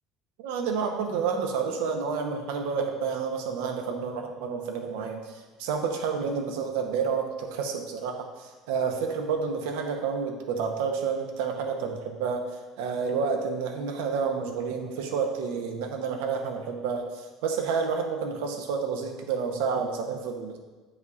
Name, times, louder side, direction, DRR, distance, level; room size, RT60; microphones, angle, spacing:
voice 1, 0.4-5.3 5.6-12.4 12.8-20.6, right 5 dB, 90° right, 3 dB, 0.8 m, -29 dB
8.1 x 5.3 x 2.4 m, 1.3 s
supercardioid pair, 110°, 0 cm